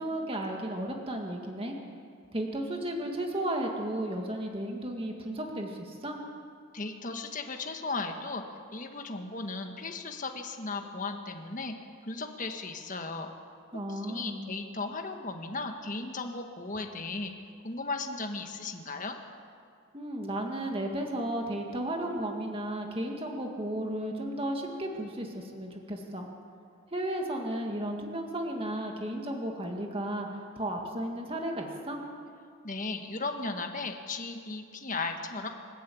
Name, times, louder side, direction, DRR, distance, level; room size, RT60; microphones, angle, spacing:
voice 1, 0.0-1.8 2.3-6.2 13.7-14.5 19.9-26.3 26.9-30.3 30.6-32.0, right 1 dB, 25° right, 1 dB, 2.0 m, -34 dB
voice 2, 6.7-8.4 8.7-11.7 12.1-13.3 13.9-17.3 17.6-19.2 32.6-35.5, left 3 dB, 35° left, 4 dB, 1.6 m, -36 dB
28.0 x 11.0 x 8.6 m, 2.3 s
head